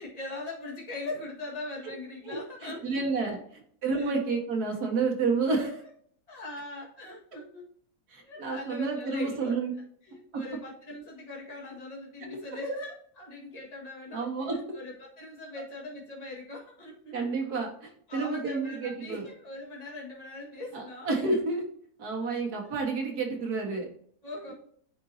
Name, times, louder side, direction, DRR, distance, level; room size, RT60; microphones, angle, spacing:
voice 1, 0.0-3.4 3.9-4.2 5.6-5.9 6.3-7.7 8.2-17.2 18.1-21.5 24.2-24.5, left 2 dB, 25° left, -4 dB, 1.9 m, -41 dB
voice 2, 2.3-3.4 3.8-5.8 8.1-9.7 12.2-12.3 14.1-14.8 17.1-19.2 20.7-21.7 22.0-23.9, right 4 dB, 80° right, 1 dB, 2.1 m, -30 dB
9.2 x 4.0 x 2.8 m, 0.62 s
omnidirectional pair, 1.6 m